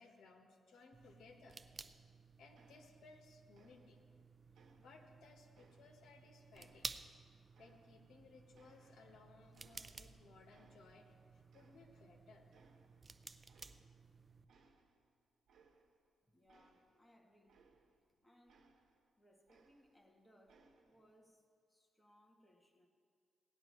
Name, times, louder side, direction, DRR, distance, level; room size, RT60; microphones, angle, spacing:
voice 1, 0.0-1.6 2.4-4.0 4.8-6.9 7.6-12.5, left 4 dB, 80° left, 3 dB, 1.3 m, -62 dB
sound 1, 0.9-14.5, right 4 dB, 30° right, 0.4 m, -55 dB
sound 2, 2.5-3.3 3.5-4.2 4.5-6.2 6.5-8.2 8.5-10.2 10.5-11.2 11.5-12.2 12.5-13.1 13.5-14.1 14.5-18.1 18.5-20.1 20.5-21.1, right 4 dB, 75° right, 1.1 m, -71 dB
voice 2, 16.2-17.6 18.2-18.7 19.2-22.9, equal, 10° left, 1 dB, 1.2 m, -69 dB
18.0 x 10.5 x 3.1 m, 2.1 s
cardioid pair, 115°, 0 cm